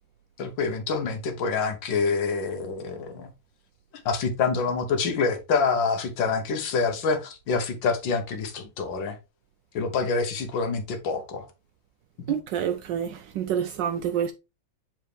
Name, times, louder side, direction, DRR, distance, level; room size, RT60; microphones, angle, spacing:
voice 1, 0.4-3.3 4.1-9.2 9.7-11.5, left 4 dB, 70° left, 1.7 m, -26 dB
voice 2, 12.3-14.3, right 9 dB, 75° right, 1.2 m, -28 dB
7.2 x 4.4 x 3.2 m
omnidirectional pair, 2.1 m